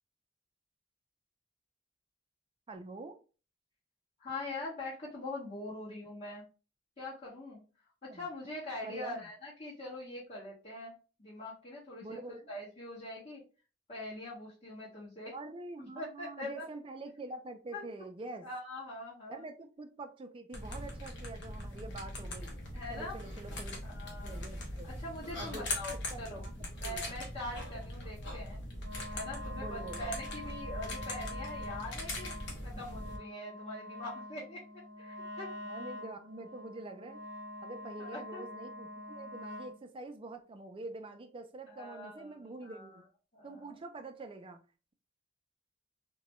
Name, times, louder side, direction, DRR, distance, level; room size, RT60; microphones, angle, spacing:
voice 1, 2.7-3.2 8.1-8.3 8.8-9.3 12.0-12.5 15.3-18.5 19.3-22.5 22.9-23.8 24.2-24.9 25.4-27.2 29.6-30.0 35.6-37.2 37.6-38.9 39.1-43.0 43.4-44.6, right 2 dB, 30° right, 6 dB, 0.4 m, -46 dB
voice 2, 4.2-6.4 7.0-7.6 8.0-13.4 13.9-15.3 15.8-16.6 17.7-17.8 18.4-19.4 22.7-23.2 23.8-24.4 24.8-26.4 26.8-28.6 29.1-32.3 32.6-34.6 35.0-35.5 38.0-38.4 41.7-42.9 43.3-43.7, left 2 dB, 35° left, -11 dB, 1.4 m, -43 dB
sound 1, 20.5-33.2, left 1 dB, 65° left, 0.8 m, -41 dB
Wind instrument woodwind instrument, 28.8-39.8, left 1 dB, 80° right, 0.5 m, -45 dB
2.8 x 2.2 x 3.0 m, 0.34 s
head